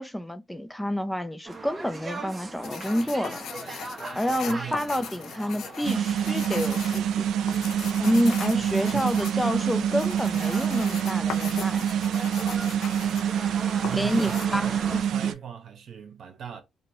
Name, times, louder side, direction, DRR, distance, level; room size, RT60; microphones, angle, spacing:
voice 1, 0.0-3.4 4.1-7.3 8.0-11.9 13.9-15.3, equal, 5° left, 0.3 m, -28 dB
sound 1, 1.4-15.0, right 3 dB, 30° right, 0.7 m, -40 dB
sound 2, 2.6-14.5, left 8 dB, 70° left, 0.4 m, -40 dB
voice 2, 4.5-5.0 8.5-8.6 8.9-9.2 13.8-16.6, right 8 dB, 60° right, 0.9 m, -40 dB
sound 3, 5.8-15.3, right 9 dB, 75° right, 0.3 m, -26 dB
2.9 x 2.6 x 2.7 m
cardioid pair, 90°, 0 cm